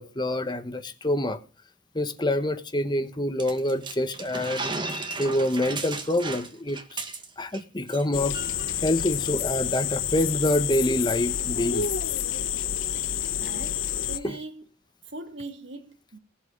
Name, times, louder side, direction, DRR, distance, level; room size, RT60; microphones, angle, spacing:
voice 1, 0.0-1.4 1.9-4.7 5.2-7.0 7.4-8.4 8.8-11.9 14.2-14.4, left 1 dB, 20° left, 1.3 m, -26 dB
sound 1, 3.4-7.6 7.9-8.0 8.3-8.7, right 3 dB, 25° right, 1.7 m, -35 dB
sound 2, 8.1-14.2, left 9 dB, 70° left, 1.1 m, -29 dB
voice 2, 13.4-14.6 15.1-16.2, right 2 dB, 60° right, 2.2 m, -40 dB
19.5 x 8.2 x 5.5 m
head